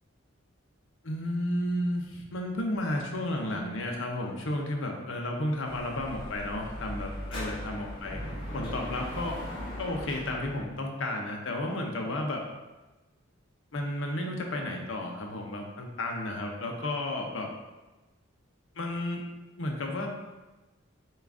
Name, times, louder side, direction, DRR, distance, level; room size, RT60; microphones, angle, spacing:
voice 1, 1.0-8.2 8.5-9.5 9.8-12.4 13.7-17.5 18.8-19.2 19.6-20.2, left 1 dB, 65° left, 1 dB, 0.6 m, -32 dB
Dog / Motorcycle, 5.6-10.6, equal, 25° left, 1.1 m, -38 dB
6.7 x 2.4 x 2.5 m, 1.1 s
head